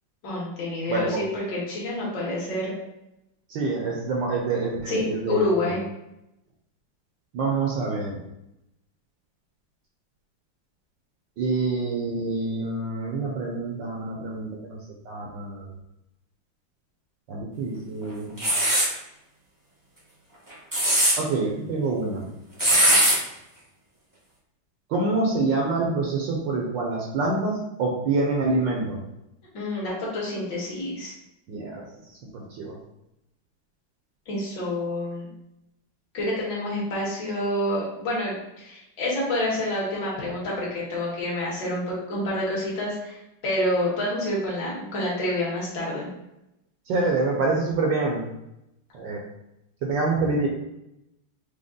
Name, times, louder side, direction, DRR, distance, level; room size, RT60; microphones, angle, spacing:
voice 1, 0.2-2.7 4.9-5.8 29.5-31.1 34.3-35.3 36.1-46.1, left 1 dB, 55° left, -5 dB, 1.9 m, -28 dB
voice 2, 0.9-1.2 3.5-5.7 7.3-8.2 11.4-14.8 15.0-15.7 17.3-18.4 21.2-22.2 24.9-29.0 31.5-31.8 32.3-32.7 46.9-48.3 48.9-49.2 49.8-50.5, right 3 dB, 70° right, -2 dB, 1.2 m, -26 dB
sound 1, 18.4-18.9 20.5-21.1 22.6-23.2, right 1 dB, 25° right, 0.4 m, -19 dB
5.1 x 2.1 x 3.7 m, 0.86 s
omnidirectional pair, 2.4 m